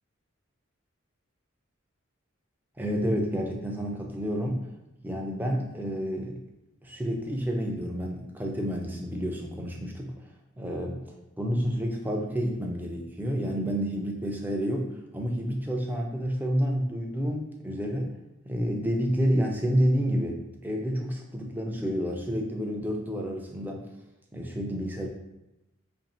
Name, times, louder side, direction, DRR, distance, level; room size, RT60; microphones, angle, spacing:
voice 1, 2.8-4.6 5.0-6.4 6.8-10.1 10.6-11.1 11.4-18.1 18.5-23.8 24.3-25.1, equal, 10° right, 0 dB, 0.4 m, -29 dB
2.9 x 2.6 x 4.2 m, 0.93 s
head